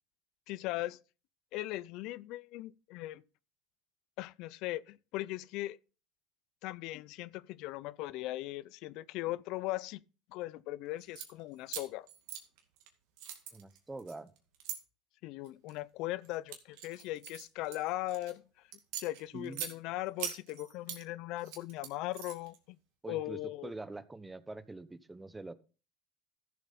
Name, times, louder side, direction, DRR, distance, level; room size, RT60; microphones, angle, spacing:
voice 1, 0.5-1.0 1.5-3.2 4.2-5.8 6.6-10.0 10.3-12.1 15.2-18.4 18.9-22.8 23.1-23.7, left 17 dB, 65° left, 0.5 m, -39 dB
sound 1, 11.0-11.3 11.7-12.9 13.2-14.8 15.4-15.8 16.2-18.3 18.7-19.7 20.2-21.0 21.4-22.6, right 10 dB, 70° right, 2.2 m, -42 dB
voice 2, 13.5-14.3 19.3-19.7 23.0-25.5, right 2 dB, 15° right, 1.0 m, -44 dB
14.0 x 7.2 x 4.1 m
supercardioid pair, 90°, 0 cm